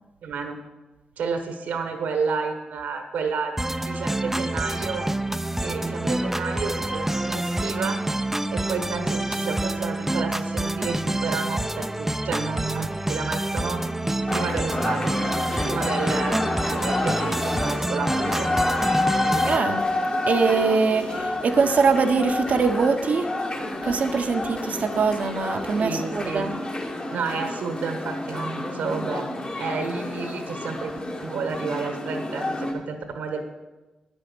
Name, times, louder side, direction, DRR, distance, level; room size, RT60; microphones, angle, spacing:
voice 1, 0.2-0.6 1.2-3.5 3.8-5.1 5.6-8.0 8.5-15.1 15.6-18.5 25.8-26.5 27.1-29.3 29.6-30.9 31.2-33.4, right 5 dB, 80° right, 6 dB, 1.4 m, -31 dB
sound 1, 3.6-19.6, right 1 dB, 10° right, 0.5 m, -27 dB
sound 2, 14.3-32.7, left 2 dB, 45° left, 2.2 m, -29 dB
voice 2, 19.5-19.9 20.3-23.3 23.8-26.6, right 4 dB, 65° right, 7 dB, 0.9 m, -22 dB
9.6 x 8.9 x 6.1 m, 1.1 s
supercardioid pair, 45°, 3 cm